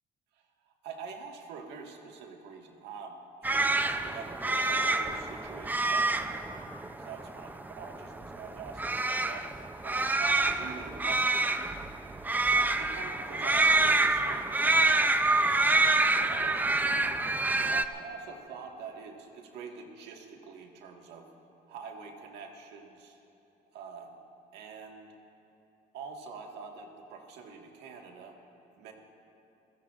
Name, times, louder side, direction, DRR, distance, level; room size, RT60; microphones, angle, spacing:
voice 1, 0.3-6.7 7.0-11.9 12.5-17.0 17.7-21.3 21.7-23.2 23.7-24.2 24.5-25.1 25.9-28.4 28.8-28.9, right 5 dB, 85° right, 2 dB, 1.7 m, -45 dB
sound 1, 3.4-17.9, right 2 dB, 10° right, 0.5 m, -27 dB
29.0 x 16.0 x 2.5 m, 2.9 s
cardioid pair, 110°, 17 cm